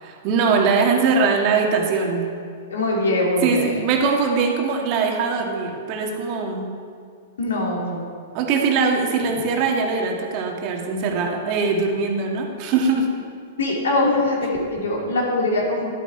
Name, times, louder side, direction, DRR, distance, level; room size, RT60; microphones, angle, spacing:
voice 1, 0.0-2.3 3.4-6.7 8.3-13.1, right 4 dB, 45° right, 1 dB, 1.6 m, -21 dB
voice 2, 2.7-3.8 7.4-8.0 13.6-15.9, left 2 dB, 80° left, -2 dB, 2.7 m, -22 dB
11.5 x 8.4 x 4.5 m, 2.2 s
hypercardioid pair, 120°, 0 cm